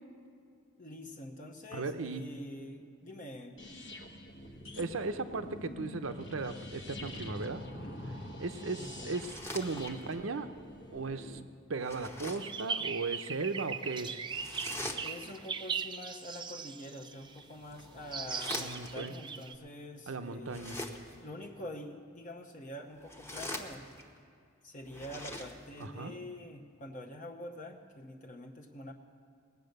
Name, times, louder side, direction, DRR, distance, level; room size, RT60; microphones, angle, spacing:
voice 1, 0.8-3.6 8.8-9.2 15.0-20.9 21.2-23.9 24.6-28.9, left 1 dB, 40° left, 1 dB, 0.8 m, -46 dB
voice 2, 1.7-2.2 4.8-7.9 8.4-10.5 10.9-11.4 11.7-14.3 18.5-19.1 20.1-20.8 25.8-26.1, right 3 dB, 75° right, 9 dB, 0.7 m, -37 dB
sound 1, 3.6-11.4, left 1 dB, 60° left, 1.2 m, -45 dB
sound 2, 9.0-10.2 11.7-12.6 14.3-15.4 17.2-19.1 20.4-21.3 22.9-24.2 24.8-25.9, left 1 dB, 10° left, 1.0 m, -43 dB
sound 3, 12.4-17.4 18.1-19.5, right 6 dB, 25° right, 0.4 m, -39 dB
19.0 x 8.1 x 6.6 m, 2.4 s
head